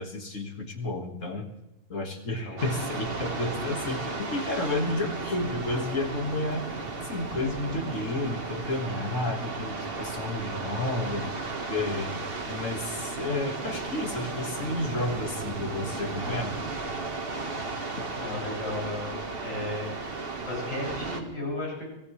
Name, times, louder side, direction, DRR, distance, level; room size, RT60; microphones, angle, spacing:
voice 1, 0.0-1.5 1.9-6.7 7.0-11.3 11.7-12.1 12.5-16.5, left 2 dB, 50° left, 3 dB, 2.2 m, -31 dB
voice 2, 2.3-2.7 18.2-19.1 19.4-19.9 20.4-21.8, left 1 dB, 85° left, -3 dB, 7.8 m, -34 dB
sound 1, 2.6-21.2, right 3 dB, 35° right, 1.6 m, -34 dB
24.5 x 16.0 x 3.3 m, 0.95 s
omnidirectional pair, 1.8 m